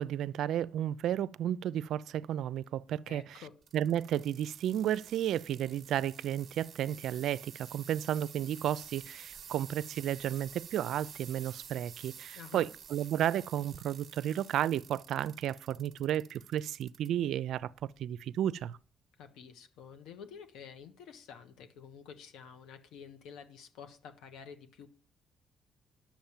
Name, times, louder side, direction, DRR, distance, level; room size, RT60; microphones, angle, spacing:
voice 1, 0.0-3.4 3.7-18.8, right 11 dB, 75° right, 0.5 m, -33 dB
voice 2, 3.1-3.5 12.3-12.7 19.2-24.9, left 7 dB, 90° left, 1.4 m, -50 dB
sound 1, 3.6-17.1 17.6-18.1 18.7-18.8, right 8 dB, 55° right, 1.1 m, -50 dB
10.5 x 7.3 x 7.3 m
cardioid pair, 90°, 0 cm